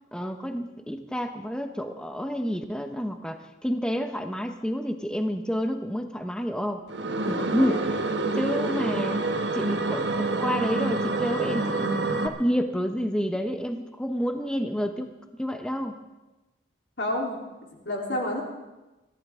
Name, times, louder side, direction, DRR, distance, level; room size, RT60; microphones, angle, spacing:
voice 1, 0.1-6.8 7.3-7.9 8.4-9.2 9.5-15.1 15.4-16.0, equal, 5° left, 6 dB, 0.9 m, -29 dB
sound 1, 6.9-12.3, right 2 dB, 70° right, 1.3 m, -27 dB
voice 2, 7.4-7.8 17.0-17.4 17.9-18.4, left 1 dB, 70° left, -1 dB, 3.6 m, -30 dB
22.5 x 15.0 x 3.7 m, 1.1 s
head